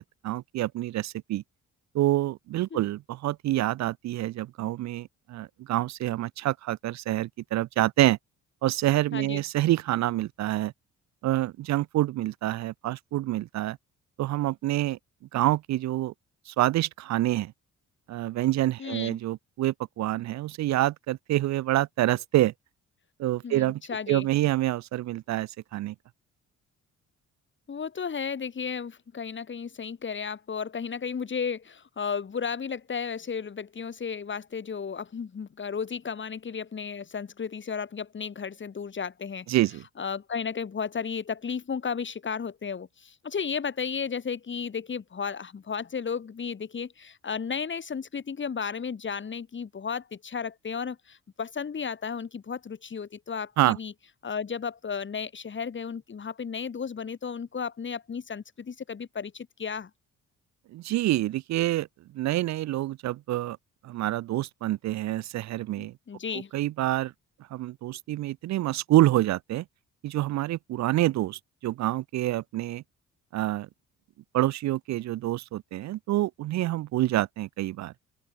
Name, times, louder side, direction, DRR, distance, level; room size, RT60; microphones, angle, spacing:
voice 1, 0.0-1.4 1.9-8.2 8.6-10.7 11.2-13.8 14.2-15.0 15.3-16.1 16.5-17.5 18.1-22.5 23.2-23.8 24.1-25.9 39.5-39.8 53.6-53.8 60.7-61.9 62.1-63.6 63.8-65.9 66.5-67.1 67.5-69.6 70.0-72.8 73.3-73.7 74.3-77.9, right 15 dB, 65° right, 0.5 m, -27 dB
voice 2, 9.1-9.4 18.8-19.2 23.4-24.3 27.7-39.5 40.0-53.9 54.2-59.9 65.8-66.5, left 6 dB, 40° left, 3.1 m, -34 dB
open air
cardioid pair, 90°, 30 cm